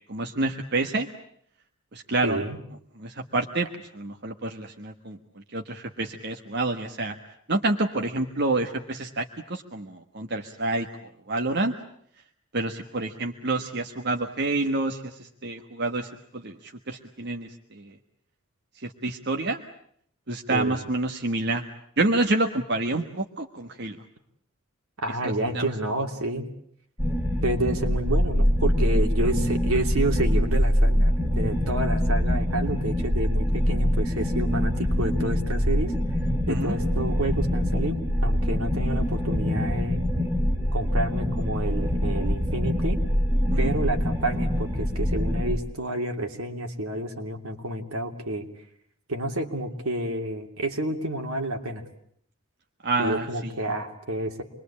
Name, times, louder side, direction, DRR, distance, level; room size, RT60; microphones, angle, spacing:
voice 1, 0.1-1.1 1.9-2.4 3.0-3.7 3.9-5.2 5.5-7.2 7.5-10.9 11.3-11.7 12.5-17.9 18.8-19.6 20.3-21.7 22.0-24.0 25.2-25.7 36.5-36.7 43.5-43.7 52.8-53.3, right 2 dB, 50° right, 3 dB, 1.4 m, -28 dB
voice 2, 2.2-2.6 20.5-20.8 25.0-26.5 27.4-35.9 36.5-40.0 40.7-43.0 43.6-48.5 49.1-51.8 53.0-54.4, right 1 dB, 75° right, 4 dB, 2.9 m, -29 dB
sound 1, 27.0-45.6, equal, 10° right, 3.6 m, -24 dB
27.5 x 22.0 x 8.6 m, 0.66 s
head